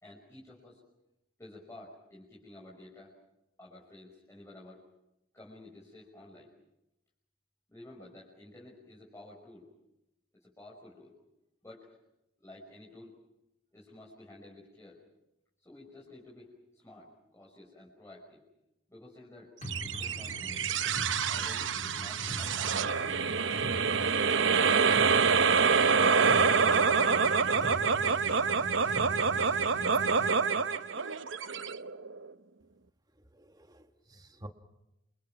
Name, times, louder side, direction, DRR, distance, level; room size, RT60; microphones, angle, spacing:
voice 1, 0.0-0.8 1.4-3.2 3.6-4.8 5.3-6.5 7.7-9.7 10.3-11.1 11.6-12.0 12.4-13.2 13.7-15.0 15.6-18.4 18.9-20.7 21.3-23.4, left 1 dB, 15° left, -4 dB, 5.5 m, -52 dB
sound 1, 19.6-30.4, left 1 dB, 40° left, 4.1 m, -42 dB
sound 2, 19.7-32.3, right 5 dB, 70° right, 0.9 m, -27 dB
voice 2, 33.3-34.5, right 1 dB, 20° right, 6 dB, 1.6 m, -50 dB
28.0 x 27.5 x 5.9 m, 0.89 s
head